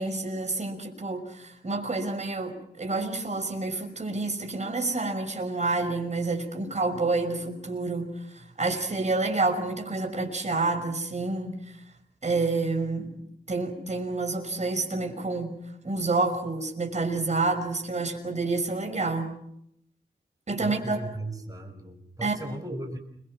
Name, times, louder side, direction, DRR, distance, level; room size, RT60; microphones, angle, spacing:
voice 1, 0.0-11.8 12.2-13.2 13.5-15.6 15.8-19.4 20.5-21.0 22.2-22.3, right 3 dB, 40° right, 4 dB, 5.9 m, -28 dB
voice 2, 20.6-23.0, right 2 dB, 20° right, 5 dB, 6.1 m, -37 dB
30.0 x 23.5 x 6.3 m, 0.76 s
wide cardioid pair, 95°, 18 cm